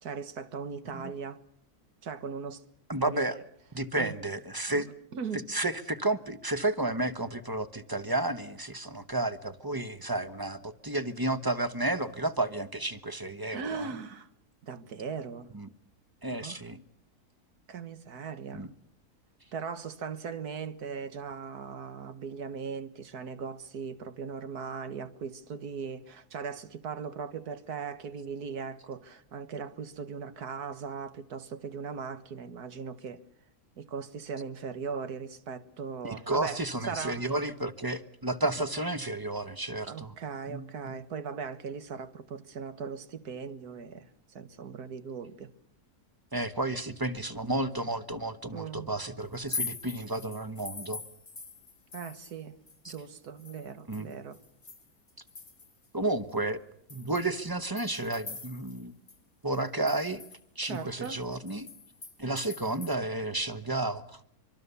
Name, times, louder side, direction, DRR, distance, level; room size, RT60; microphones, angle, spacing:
voice 1, 0.0-1.4 2.0-2.6 3.0-3.2 4.0-4.2 4.7-4.8 5.1-5.5 13.5-14.3 14.6-15.5 16.3-16.6 17.7-18.7 19.5-33.2 33.8-37.4 39.9-45.5 48.5-48.9 51.9-52.6 52.9-54.4 60.6-61.2, right 6 dB, 80° right, 2.0 m, -39 dB
voice 2, 2.9-3.4 3.7-4.9 5.5-13.9 15.5-15.7 16.2-16.8 18.5-18.7 36.0-40.1 40.5-40.7 46.3-51.0 52.8-52.9 53.9-54.1 55.9-56.6 56.9-58.9 59.4-60.2 60.6-61.7 62.2-64.3, right 2 dB, 15° right, 1.0 m, -32 dB
sound 1, 49.3-52.4 52.7-55.9 56.3-56.4 56.9-58.8 59.1-59.2 59.5-62.9, left 4 dB, 25° left, 1.5 m, -43 dB
24.5 x 24.0 x 7.0 m
omnidirectional pair, 1.6 m